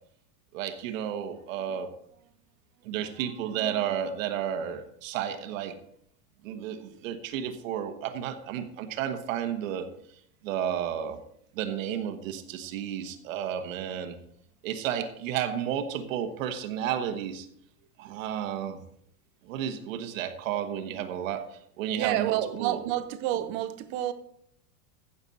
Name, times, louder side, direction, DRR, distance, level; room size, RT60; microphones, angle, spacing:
voice 1, 0.5-1.9 2.8-5.8 6.4-9.9 10.4-11.2 11.5-14.2 14.6-17.5 18.0-18.8 19.4-22.8, right 9 dB, 55° right, 1.3 m, -32 dB
voice 2, 22.0-24.1, right 13 dB, 25° right, 0.5 m, -29 dB
15.0 x 7.1 x 4.1 m
supercardioid pair, 160°, 47 cm